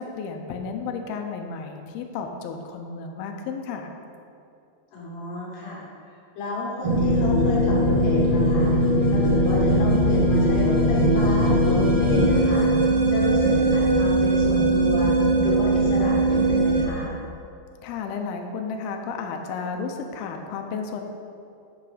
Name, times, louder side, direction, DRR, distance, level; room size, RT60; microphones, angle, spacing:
voice 1, 0.0-3.9 17.8-21.0, left 5 dB, 90° left, 4 dB, 2.1 m, -32 dB
voice 2, 4.9-5.8 6.4-8.8 9.0-12.7 13.1-15.2 15.4-17.1, left 1 dB, 65° left, -5 dB, 3.7 m, -32 dB
sound 1, 6.8-16.8, right 1 dB, 70° right, 1.3 m, -20 dB
9.1 x 5.9 x 5.0 m, 2.5 s
omnidirectional pair, 5.2 m